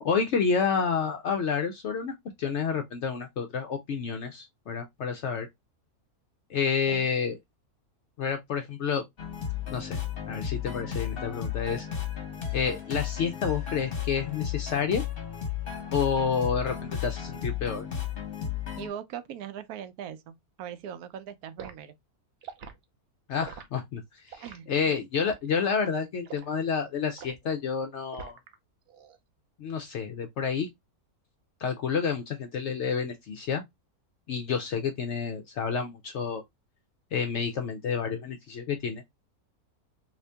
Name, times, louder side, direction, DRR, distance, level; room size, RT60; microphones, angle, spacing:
voice 1, 0.0-5.5 6.5-7.4 8.2-9.0 9.7-10.0 10.3-11.9 12.5-15.0 15.9-16.8 17.0-17.9 23.3-28.4 29.6-30.7 31.6-33.6 34.3-36.4 37.1-39.0, left 6 dB, 70° left, 0.7 m, -29 dB
sound 1, 9.2-18.9, left 9 dB, 40° left, 1.1 m, -34 dB
voice 2, 18.8-21.9 24.4-25.0, right 9 dB, 75° right, 1.0 m, -40 dB
Liquid, 21.6-21.8 22.4-22.8 23.4-23.7 24.3-24.6 25.2-25.5 26.2-26.5 27.2-27.4 28.1-28.5 28.9-29.2, right 7 dB, 60° right, 0.6 m, -43 dB
2.8 x 2.6 x 3.3 m
omnidirectional pair, 1.6 m